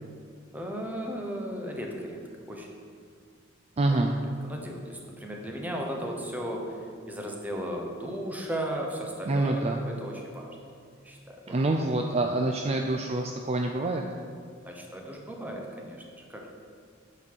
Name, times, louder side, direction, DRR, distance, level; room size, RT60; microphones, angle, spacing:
voice 1, 0.5-2.8 3.9-4.0 4.4-6.8 7.1-10.6 11.0-11.7 14.6-16.5, equal, 10° right, 0 dB, 1.0 m, -36 dB
voice 2, 3.8-4.2 9.3-9.8 11.5-14.0, right 2 dB, 30° right, 3 dB, 0.4 m, -26 dB
8.8 x 4.2 x 6.5 m, 2.2 s
head